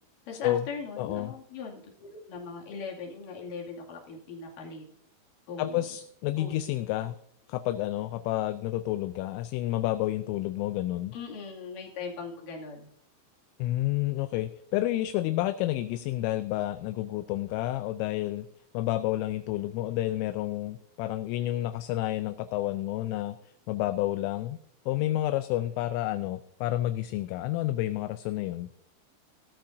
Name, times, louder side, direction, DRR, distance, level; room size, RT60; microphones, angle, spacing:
voice 1, 0.3-4.8 5.5-5.9 6.4-6.6 11.1-12.9, left 4 dB, 50° left, -2 dB, 3.4 m, -40 dB
voice 2, 1.0-1.3 5.6-7.2 7.5-11.2 13.6-18.5 18.7-23.4 23.7-24.6 24.9-28.7, left 15 dB, 85° left, 11 dB, 3.0 m, -30 dB
18.5 x 13.0 x 2.7 m, 0.73 s
omnidirectional pair, 5.9 m